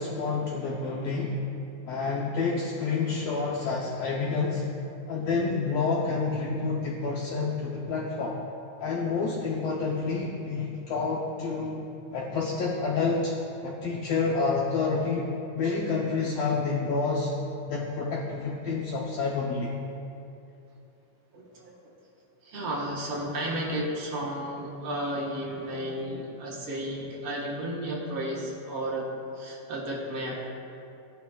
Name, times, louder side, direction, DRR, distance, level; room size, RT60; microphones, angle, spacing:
voice 1, 0.0-1.4 1.9-4.6 5.1-8.4 8.8-11.8 12.1-13.3 13.6-15.3 15.5-17.3 17.7-19.8, left 4 dB, 80° left, -3 dB, 1.4 m, -28 dB
voice 2, 21.3-21.8 22.4-29.1 29.3-30.5, right 1 dB, 50° right, -4 dB, 1.9 m, -33 dB
14.0 x 10.0 x 2.3 m, 2.7 s
omnidirectional pair, 3.8 m